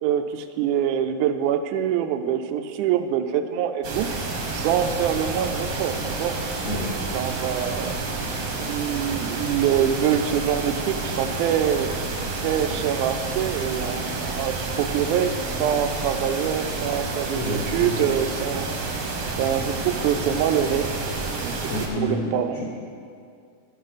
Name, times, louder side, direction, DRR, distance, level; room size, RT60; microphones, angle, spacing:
voice 1, 0.0-4.1 4.5-6.4 7.1-7.9 8.5-11.9 12.4-18.7 19.4-20.9 21.4-21.7 22.0-22.6, right 9 dB, 85° right, 8 dB, 2.1 m, -25 dB
sound 1, 3.8-21.9, right 3 dB, 55° right, 1.5 m, -29 dB
voice 2, 17.3-18.1 21.7-22.7, left 1 dB, 60° left, -6 dB, 2.2 m, -29 dB
10.5 x 10.0 x 4.1 m, 2.3 s
omnidirectional pair, 3.5 m